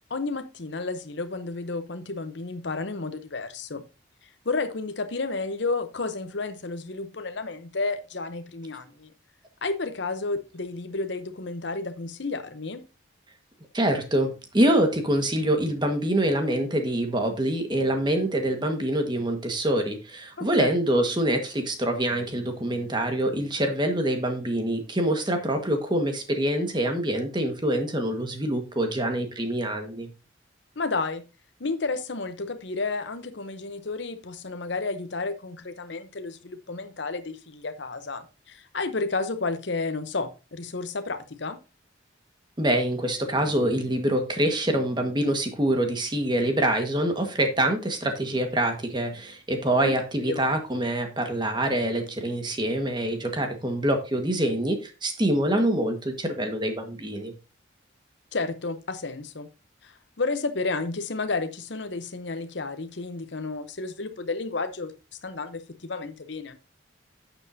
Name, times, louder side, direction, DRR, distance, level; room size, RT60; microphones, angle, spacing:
voice 1, 0.1-3.8 4.4-9.1 9.6-12.8 20.4-20.7 30.8-31.2 31.6-41.6 49.8-49.9 50.3-50.5 58.3-59.5 59.8-64.9 65.2-66.6, left 3 dB, 65° left, 9 dB, 0.8 m, -31 dB
voice 2, 13.7-30.1 42.6-57.3, right 1 dB, 25° right, 5 dB, 1.5 m, -25 dB
11.0 x 7.2 x 2.7 m, 0.30 s
head